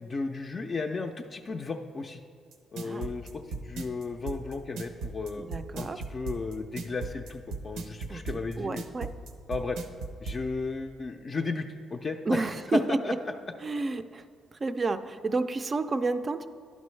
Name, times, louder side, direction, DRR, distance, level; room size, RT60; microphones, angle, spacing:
voice 1, 0.0-2.2 2.7-5.5 5.7-8.9 9.5-9.8 10.2-13.1, left 3 dB, 40° left, 4 dB, 0.4 m, -34 dB
sound 1, 2.5-10.4, right 4 dB, 90° right, 0.6 m, -36 dB
voice 2, 5.4-6.0 8.1-8.2 8.6-9.1 12.3-13.2 13.6-14.2 14.6-16.5, right 3 dB, 35° right, 10 dB, 0.4 m, -30 dB
11.0 x 5.3 x 3.2 m, 2.3 s
cardioid pair, 90°, 0 cm